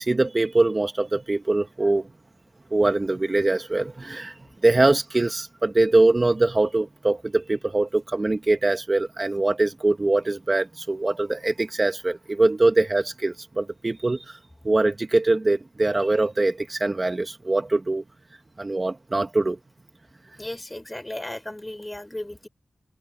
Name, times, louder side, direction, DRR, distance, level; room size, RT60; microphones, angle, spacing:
voice 1, 0.0-2.0 2.7-4.4 4.6-14.4 14.6-18.0 18.6-19.6, right 2 dB, 30° right, 1.9 m, -22 dB
voice 2, 20.4-22.5, left 1 dB, 15° left, 6.1 m, -35 dB
cardioid pair, 65°, 0 cm